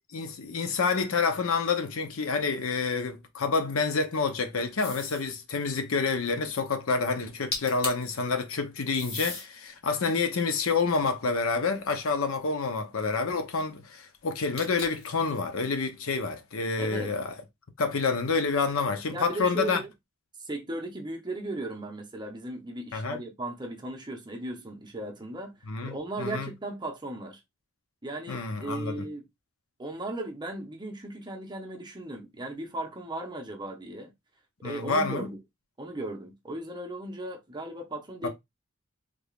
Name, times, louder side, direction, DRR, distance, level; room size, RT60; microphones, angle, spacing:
voice 1, 0.1-17.3 17.8-19.8 22.9-23.2 25.7-26.5 28.3-29.1 34.6-35.3 38.2-38.3, left 4 dB, 80° left, 0.7 m, -28 dB
sound 1, 4.8-5.3 7.2-7.3 7.5-8.1 8.9-9.5 10.1-11.6 14.6-15.1, left 2 dB, 30° left, 1.3 m, -37 dB
voice 2, 16.8-17.1 19.1-19.9 20.5-25.5 25.8-27.4 28.0-29.3 29.8-34.1 34.6-35.4 35.8-38.3, right 1 dB, 20° right, 0.8 m, -37 dB
3.4 x 3.3 x 2.4 m
head